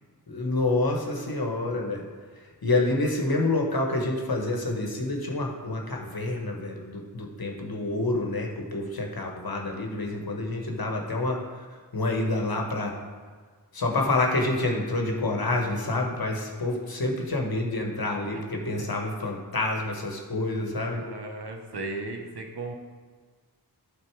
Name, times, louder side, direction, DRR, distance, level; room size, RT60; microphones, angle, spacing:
voice 1, 0.3-2.0 2.6-11.4 11.9-12.9 13.7-21.0, left 2 dB, 60° left, 1 dB, 1.4 m, -28 dB
voice 2, 20.8-22.7, right 3 dB, 70° right, 3 dB, 1.2 m, -36 dB
12.0 x 4.2 x 4.7 m, 1.5 s
wide cardioid pair, 60°, 41 cm